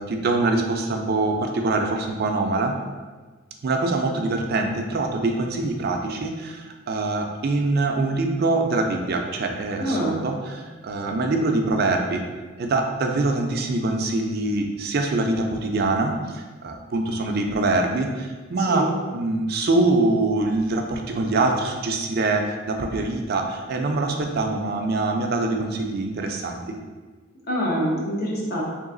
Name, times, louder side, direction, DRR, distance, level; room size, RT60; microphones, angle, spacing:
voice 1, 0.0-2.8 3.6-12.2 12.6-26.6, right 2 dB, 50° right, 3 dB, 0.4 m, -24 dB
voice 2, 9.8-10.2 18.7-18.9 27.5-28.6, equal, 50° left, -4 dB, 0.9 m, -25 dB
3.3 x 3.0 x 3.7 m, 1.4 s
head